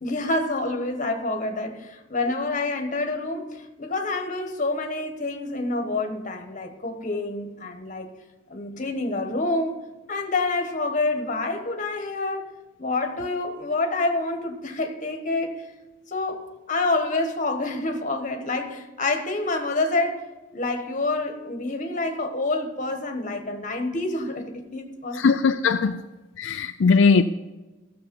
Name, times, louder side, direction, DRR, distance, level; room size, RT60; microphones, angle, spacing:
voice 1, 0.0-8.1 8.5-9.8 10.1-12.5 12.8-15.7 16.1-20.3 20.5-25.3, left 2 dB, 40° left, 1.3 m, -27 dB
voice 2, 25.2-26.0 26.4-27.2, left 5 dB, 65° left, 0.4 m, -19 dB
15.0 x 6.8 x 5.4 m
head